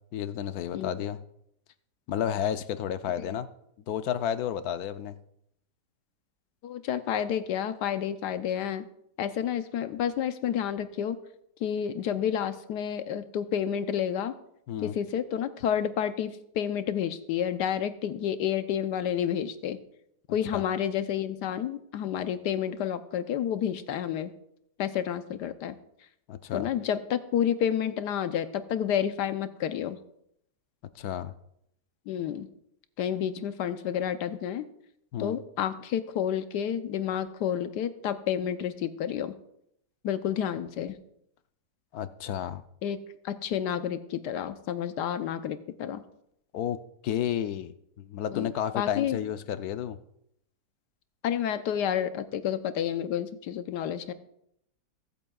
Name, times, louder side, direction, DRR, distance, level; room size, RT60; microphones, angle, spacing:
voice 1, 0.1-1.2 2.1-3.5 3.9-5.2 14.7-15.0 20.5-20.6 26.3-26.7 30.9-31.3 35.1-35.4 41.9-42.6 46.5-50.0, left 10 dB, 70° left, 11 dB, 1.1 m, -31 dB
voice 2, 6.6-8.8 9.2-11.2 11.6-14.3 14.8-19.8 20.3-24.3 24.8-25.8 26.5-30.0 32.1-32.5 33.0-34.6 35.2-39.4 40.0-41.0 42.8-43.0 43.2-46.0 48.3-48.5 48.7-49.2 51.2-54.1, left 9 dB, 90° left, 10 dB, 1.3 m, -30 dB
22.5 x 8.2 x 2.3 m, 0.76 s
omnidirectional pair, 1.8 m